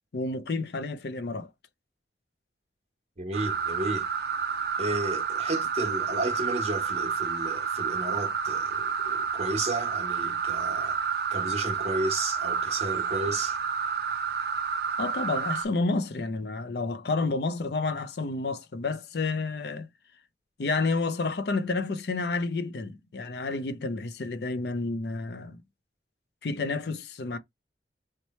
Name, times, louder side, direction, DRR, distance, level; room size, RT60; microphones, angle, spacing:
voice 1, 0.1-1.5 15.0-19.9 20.6-25.6 26.4-27.4, left 3 dB, 65° left, 0.5 m, -30 dB
voice 2, 3.2-4.1 4.8-11.0 11.3-13.6, right 2 dB, 35° right, 1.1 m, -33 dB
sound 1, 3.3-15.6, right 6 dB, 60° right, 0.4 m, -30 dB
3.0 x 2.2 x 4.1 m
head